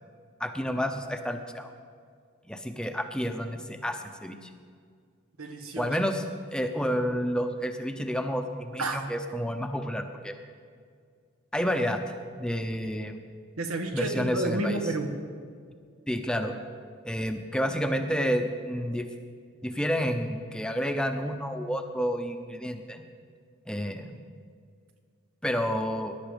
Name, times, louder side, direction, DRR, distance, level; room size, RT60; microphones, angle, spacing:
voice 1, 0.4-1.7 2.5-4.5 5.8-6.2 6.5-10.3 11.5-13.2 13.9-14.8 16.1-16.5 17.0-19.1 19.6-23.0 23.7-24.1 25.4-26.1, equal, 5° left, 6 dB, 0.7 m, -30 dB
voice 2, 5.4-6.0 8.8-9.0 13.6-15.1, right 2 dB, 85° right, 4 dB, 1.6 m, -30 dB
19.5 x 11.0 x 5.2 m, 2.1 s
head